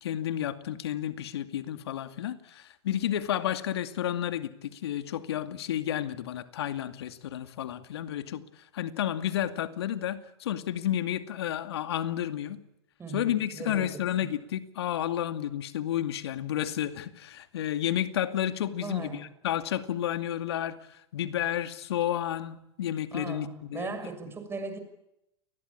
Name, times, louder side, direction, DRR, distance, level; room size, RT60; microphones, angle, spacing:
voice 1, 0.0-8.4 8.7-12.6 13.1-23.9, left 11 dB, 65° left, 2.3 m, -31 dB
voice 2, 13.0-14.4 18.8-19.2 23.1-24.8, right 4 dB, 15° right, 6.4 m, -39 dB
29.5 x 21.0 x 8.7 m
hypercardioid pair, 105°, 14 cm